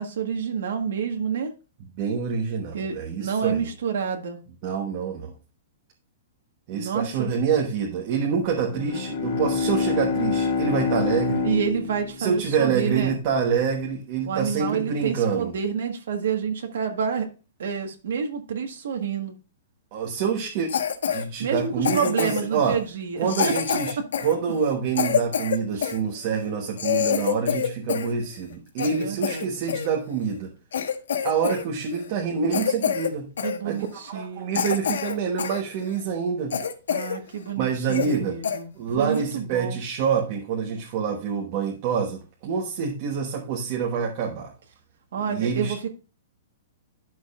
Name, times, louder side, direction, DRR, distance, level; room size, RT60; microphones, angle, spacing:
voice 1, 0.0-1.5 2.7-4.4 6.7-7.3 11.4-13.2 14.2-17.3 17.6-19.3 21.4-23.5 25.8-25.9 29.0-29.5 33.4-34.7 36.9-38.7 39.0-39.8 45.1-45.9, right 6 dB, 65° right, 4 dB, 1.5 m, -28 dB
voice 2, 2.0-3.7 4.6-5.3 6.7-11.5 12.2-15.5 19.9-20.7 21.1-22.8 23.2-23.9 24.2-30.5 31.2-33.3 33.6-36.6 37.6-38.4 38.7-44.5 45.2-45.7, right 6 dB, 30° right, 0 dB, 1.2 m, -26 dB
Bowed string instrument, 8.6-13.2, left 5 dB, 40° left, 1.4 m, -27 dB
Cough, 20.7-21.2 21.8-22.6 23.3-26.0 26.5-26.6 26.8-28.1 28.4-29.9 30.4-30.5 30.7-31.6 31.9-32.1 32.5-33.1 33.4-33.6 34.1-34.2 34.5-35.6 36.0-36.1 36.5-37.2 37.5-37.6 37.9-38.2 38.4-38.6 39.1-39.3, left 8 dB, 90° left, 1.3 m, -26 dB
11.5 x 6.2 x 2.4 m, 0.32 s
hypercardioid pair, 175°, 0 cm